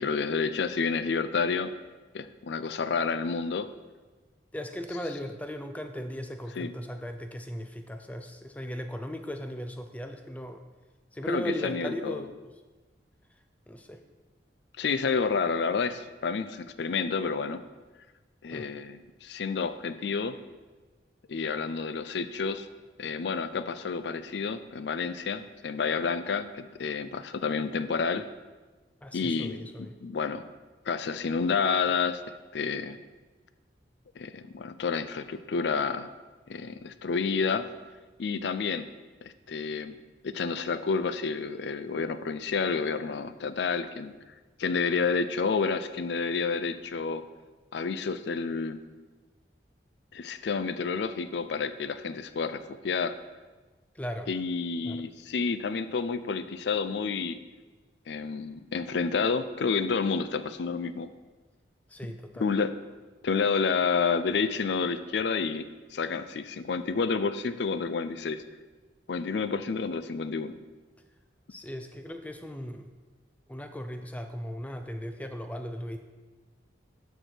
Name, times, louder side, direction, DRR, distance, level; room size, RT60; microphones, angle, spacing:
voice 1, 0.0-1.7 2.1-3.7 6.6-6.7 11.3-12.2 14.8-17.6 18.4-20.3 21.3-22.7 23.0-28.2 29.1-29.7 30.0-30.4 30.9-33.0 34.2-36.1 36.5-37.7 38.2-38.9 39.5-40.0 40.2-44.1 44.6-47.2 47.7-48.8 50.1-53.2 54.3-57.4 58.1-61.1 62.4-62.7 63.2-65.6 65.9-68.4 69.1-70.5, left 5 dB, 70° left, 12 dB, 0.4 m, -29 dB
voice 2, 4.5-10.6 11.1-12.3 13.7-14.0 18.5-18.7 29.0-30.0 53.9-54.3 54.8-55.0 61.9-62.5 71.5-72.9 73.5-76.0, equal, 10° left, 6 dB, 0.4 m, -37 dB
13.0 x 4.6 x 4.4 m, 1.3 s
head